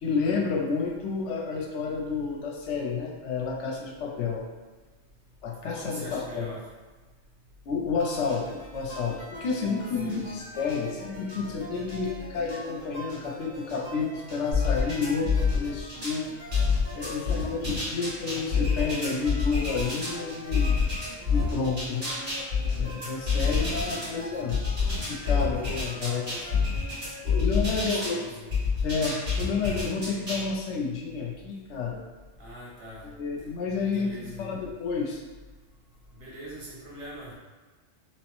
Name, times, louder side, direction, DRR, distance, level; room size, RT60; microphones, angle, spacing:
voice 1, 0.0-4.4 5.4-6.6 7.7-16.3 16.9-20.8 21.3-22.1 22.8-24.6 24.9-26.4 27.2-28.2 28.8-32.0 33.0-35.2, left 5 dB, 80° left, 0 dB, 0.9 m, -30 dB
voice 2, 5.7-6.7 10.0-10.4 17.2-17.5 23.4-24.3 27.8-28.5 32.4-33.1 33.9-34.6 36.1-37.4, right 1 dB, 85° right, -6 dB, 1.3 m, -43 dB
sound 1, 8.0-27.2, right 1 dB, 35° right, 1.2 m, -43 dB
sound 2, 14.5-16.2 16.5-20.1 20.5-24.1 24.5-28.1 28.5-30.4, left 5 dB, 55° right, 1.6 m, -27 dB
3.0 x 2.0 x 3.0 m, 1.3 s
omnidirectional pair, 1.2 m